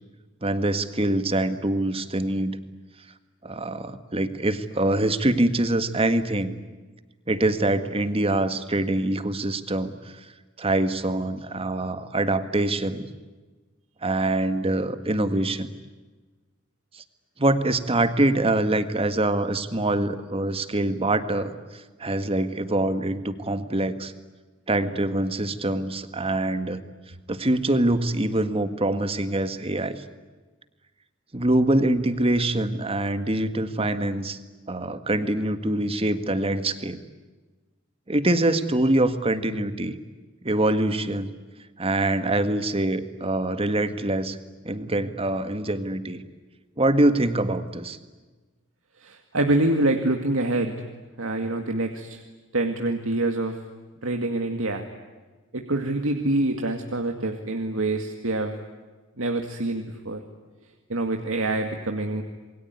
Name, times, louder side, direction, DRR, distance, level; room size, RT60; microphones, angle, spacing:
voice 1, 0.4-2.6 3.4-6.5 7.3-9.9 10.6-13.1 14.0-15.7 16.9-17.0 17.4-24.1 24.7-26.8 27.3-30.0 31.3-34.4 34.7-37.0 38.1-40.0 40.4-41.3 41.8-44.4 44.6-46.2 46.8-48.0, right 1 dB, 30° right, 10 dB, 1.8 m, -24 dB
voice 2, 49.0-50.7 51.2-52.2 52.5-53.6 54.0-54.9 55.5-58.6 59.2-60.2 60.9-62.2, right 2 dB, 75° right, 4 dB, 2.2 m, -26 dB
28.0 x 22.5 x 9.6 m, 1.3 s
head